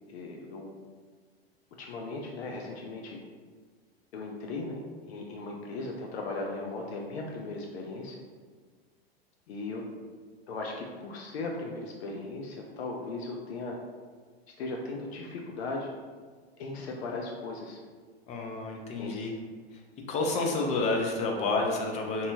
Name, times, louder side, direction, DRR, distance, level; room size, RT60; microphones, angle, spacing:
voice 1, 0.1-0.7 1.8-3.2 4.1-8.2 9.5-9.8 10.5-13.8 14.6-15.9 16.6-17.8 19.0-19.2, left 3 dB, 80° left, 0 dB, 0.5 m, -37 dB
voice 2, 18.3-19.3 19.7-19.8 20.1-22.3, left 3 dB, 25° left, 1 dB, 0.3 m, -29 dB
2.7 x 2.3 x 2.6 m, 1.5 s
hypercardioid pair, 110°, 31 cm